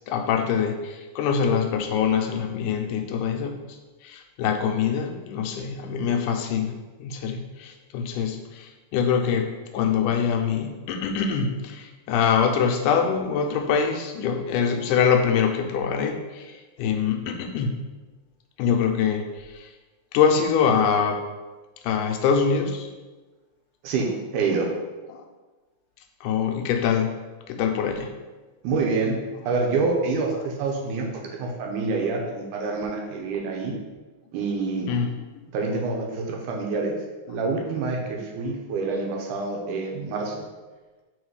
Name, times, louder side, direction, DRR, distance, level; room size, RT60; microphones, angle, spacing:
voice 1, 0.1-3.5 4.0-6.7 7.0-17.7 18.6-19.2 19.5-19.7 20.1-21.2 21.8-22.9 25.1-25.2 26.2-27.1 27.5-28.1 34.9-35.2, left 7 dB, 85° left, 4 dB, 2.2 m, -24 dB
voice 2, 23.8-24.7 28.6-33.7 34.3-34.9 35.5-36.9 37.3-40.3, right 4 dB, 85° right, 1 dB, 2.3 m, -27 dB
4.9 x 3.9 x 4.8 m, 1.2 s
omnidirectional pair, 3.6 m